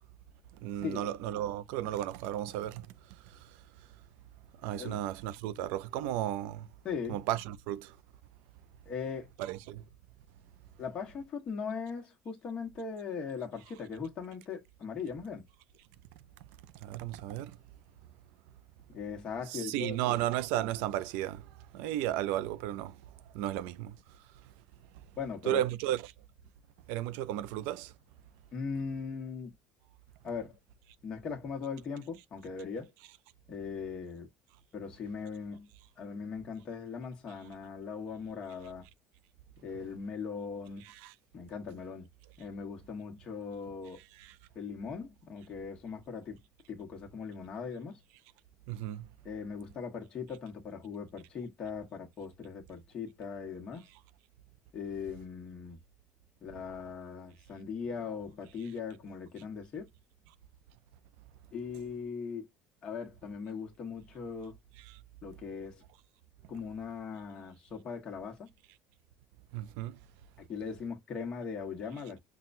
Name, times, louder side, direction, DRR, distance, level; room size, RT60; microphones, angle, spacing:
voice 1, 0.6-2.9 3.4-3.5 4.6-6.7 7.1-7.9 9.4-9.8 16.8-17.6 19.5-21.4 21.7-23.0 23.3-24.0 25.5-26.1 26.9-27.9 40.8-41.1 44.1-44.4 48.7-49.1 64.9-65.0 69.5-70.0, right 13 dB, 75° right, 0.4 m, -34 dB
voice 2, 6.8-7.2 8.9-9.3 10.8-15.4 18.9-20.2 25.2-25.6 28.5-29.5 30.2-30.6 31.0-32.9 33.5-34.3 34.7-35.7 36.0-38.8 39.6-40.8 41.3-42.1 42.4-44.0 44.5-46.4 46.7-48.0 49.2-53.8 54.7-55.8 56.4-59.9 61.5-62.5 62.8-64.6 65.2-65.8 66.5-68.5 70.5-72.2, left 5 dB, 30° left, 1.1 m, -39 dB
5.8 x 2.2 x 2.5 m
cardioid pair, 165°, 3 cm